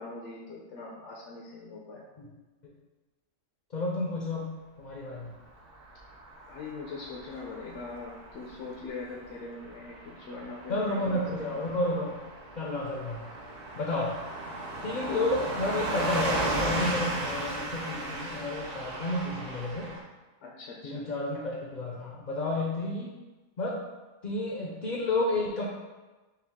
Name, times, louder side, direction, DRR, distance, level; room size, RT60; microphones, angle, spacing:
voice 1, 0.0-2.0 6.5-11.2 11.5-11.6 15.1-15.4 20.4-21.1, left 3 dB, 70° left, -3 dB, 0.9 m, -41 dB
voice 2, 3.7-4.5 4.8-5.4 10.7-12.1 12.6-13.2 13.8-14.2 14.8-19.9 20.8-23.1 23.6-23.8 24.2-25.6, left 2 dB, 50° left, -3 dB, 0.6 m, -31 dB
Car passing by / Truck, 5.6-20.0, right 1 dB, 55° right, 0.8 m, -35 dB
5.7 x 2.4 x 3.5 m, 1.2 s
omnidirectional pair, 1.3 m